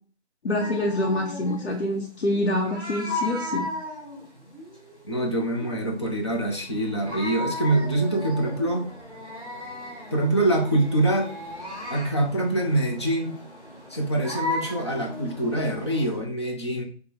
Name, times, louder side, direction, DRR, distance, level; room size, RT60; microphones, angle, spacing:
voice 1, 0.4-3.7, left 1 dB, 75° left, -1 dB, 0.9 m, -26 dB
sound 1, 0.6-16.2, left 2 dB, ahead, 1.2 m, -36 dB
voice 2, 5.1-8.9 10.1-11.3 11.9-13.3 13.9-16.8, right 1 dB, 25° left, 0 dB, 0.6 m, -25 dB
4.8 x 2.3 x 4.2 m, 0.42 s
figure-of-eight pair, 160°, 34 cm